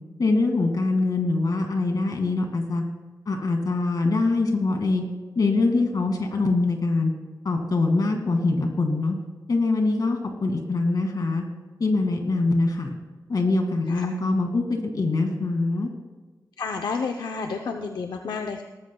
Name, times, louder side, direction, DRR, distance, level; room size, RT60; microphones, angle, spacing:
voice 1, 0.2-2.8 3.3-5.0 5.4-7.1 7.4-9.2 9.5-11.4 11.8-12.9 13.3-14.6 14.9-15.9, left 3 dB, 65° left, 3 dB, 2.2 m, -23 dB
voice 2, 16.6-18.6, left 4 dB, 85° left, 4 dB, 0.7 m, -30 dB
18.5 x 14.0 x 2.3 m, 1.3 s
wide cardioid pair, 80°, 7 cm